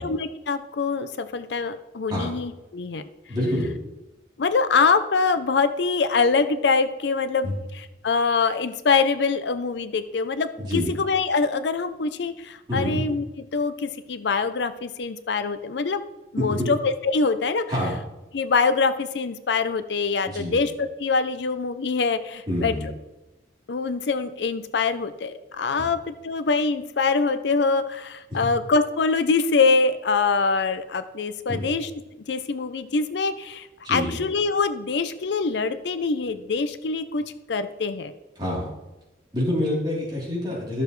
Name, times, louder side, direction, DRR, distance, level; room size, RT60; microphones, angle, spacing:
voice 1, 0.0-3.0 4.4-16.0 16.3-17.6 18.3-22.7 23.7-31.9 32.3-38.1, left 4 dB, 70° left, 12 dB, 0.5 m, -24 dB
voice 2, 3.3-3.7 7.4-7.5 10.6-10.9 12.7-13.0 16.4-16.5 17.7-18.0 20.3-20.6 22.5-22.9 25.8-25.9 31.5-31.7 33.8-34.1 38.4-38.7 39.3-40.8, left 1 dB, 25° right, -6 dB, 3.3 m, -26 dB
12.5 x 6.8 x 3.1 m, 1.0 s
head